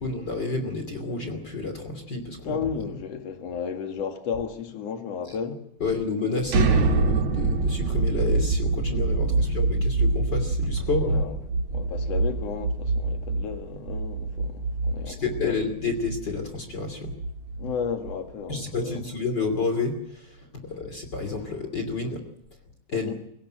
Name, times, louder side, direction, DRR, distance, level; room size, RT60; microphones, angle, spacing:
voice 1, 0.0-2.6 5.8-11.3 15.1-17.1 18.5-22.2 22.9-23.1, left 4 dB, 35° left, 3.1 m, -30 dB
voice 2, 2.4-5.6 9.1-9.5 11.1-11.4 11.7-15.6 17.6-19.0 22.9-23.1, left 6 dB, 55° left, 3.1 m, -33 dB
sound 1, 6.5-18.3, right 3 dB, 60° right, 2.4 m, -25 dB
24.0 x 17.5 x 7.7 m
omnidirectional pair, 3.6 m